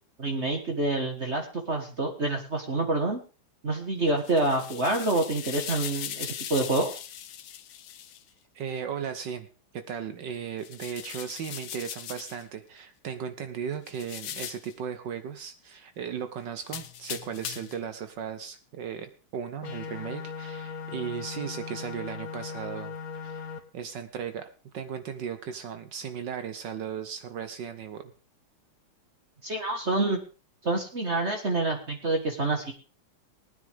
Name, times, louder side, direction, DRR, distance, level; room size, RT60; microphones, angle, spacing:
voice 1, 0.2-3.2 3.6-7.0 29.4-30.2 30.6-32.7, right 2 dB, 35° right, 3 dB, 1.7 m, -27 dB
sound 1, 4.1-8.2 10.6-12.4 13.9-14.7 16.6-17.8, left 10 dB, 75° left, 1.6 m, -39 dB
voice 2, 8.5-9.5 9.7-22.9 23.2-28.1, right 7 dB, 70° right, 9 dB, 1.5 m, -36 dB
sound 2, 19.6-23.6, left 5 dB, 50° left, 1.5 m, -38 dB
19.0 x 9.9 x 3.5 m, 0.35 s
omnidirectional pair, 2.2 m